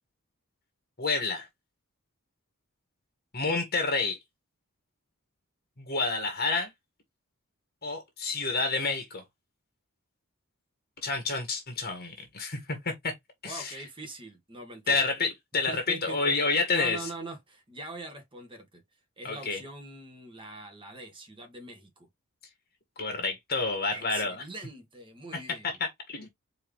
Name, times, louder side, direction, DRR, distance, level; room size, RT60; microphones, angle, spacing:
voice 1, 1.0-1.5 3.3-4.2 5.8-6.7 7.8-9.2 11.0-13.1 13.4-13.7 14.9-17.1 19.2-19.6 23.0-24.3 25.3-26.3, left 3 dB, 45° left, 1.6 m, -29 dB
voice 2, 13.4-15.0 15.7-16.3 16.7-18.8 19.2-22.1 23.9-25.8 26.2-26.3, right 2 dB, 25° right, 1.7 m, -43 dB
4.7 x 3.3 x 3.4 m
head